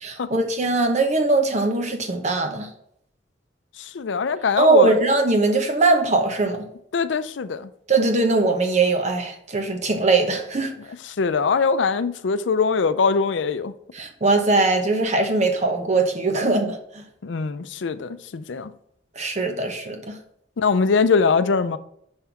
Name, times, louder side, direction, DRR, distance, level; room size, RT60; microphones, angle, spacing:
voice 1, 0.0-2.7 4.6-6.6 7.9-10.7 13.9-17.0 19.2-20.1, right 3 dB, 40° right, 0.9 m, -21 dB
voice 2, 3.8-5.0 6.9-7.7 11.2-13.7 17.2-18.7 20.6-21.8, left 5 dB, 85° left, 0.5 m, -22 dB
5.7 x 5.3 x 5.9 m
head